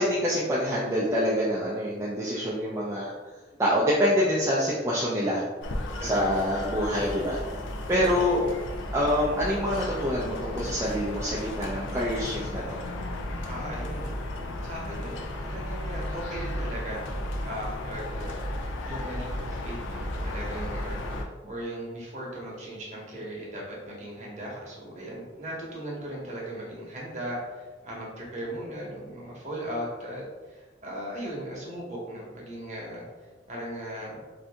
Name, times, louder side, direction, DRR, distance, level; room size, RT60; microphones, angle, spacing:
voice 1, 0.0-3.1 3.6-5.4 6.0-7.4 7.9-8.4 8.9-12.8, equal, 15° right, -7 dB, 0.3 m, -26 dB
sound 1, 5.6-21.2, left 1 dB, 90° left, 0.4 m, -34 dB
voice 2, 6.0-6.4 13.4-14.2 14.6-17.0 17.4-18.4 18.8-21.0 21.4-30.2 30.5-33.0 33.5-34.2, right 1 dB, 40° right, -4 dB, 0.9 m, -37 dB
2.7 x 2.6 x 3.3 m, 1.3 s
head